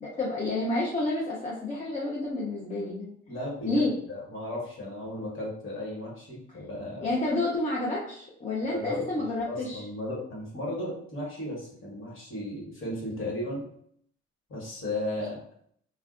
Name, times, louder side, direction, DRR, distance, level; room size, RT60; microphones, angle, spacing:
voice 1, 0.0-3.1 3.7-3.9 7.0-9.8, left 2 dB, 25° left, -5 dB, 0.6 m, -29 dB
voice 2, 3.3-7.3 8.7-9.0 9.5-13.6 14.5-15.4, left 1 dB, 45° left, -4 dB, 1.2 m, -35 dB
2.4 x 2.1 x 2.4 m, 0.65 s
cardioid pair, 100°, 29 cm